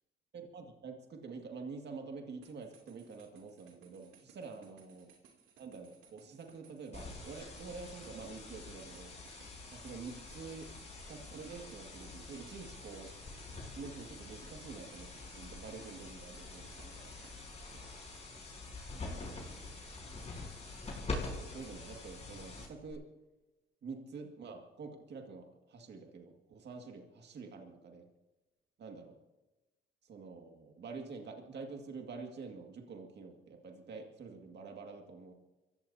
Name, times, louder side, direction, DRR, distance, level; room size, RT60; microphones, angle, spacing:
voice 1, 0.3-5.1 5.6-9.1 9.7-10.7 11.1-13.1 13.6-17.1 17.7-17.9 19.0-19.7 21.5-23.0 23.8-28.1 28.8-29.1 30.0-35.3, right 4 dB, 60° right, 2 dB, 2.1 m, -47 dB
sound 1, 2.4-17.3, right 6 dB, 85° right, 2.8 m, -62 dB
sound 2, 6.9-22.9, left 3 dB, 35° left, 5.2 m, -45 dB
28.5 x 15.5 x 2.8 m, 1.1 s
cardioid pair, 90°, 20 cm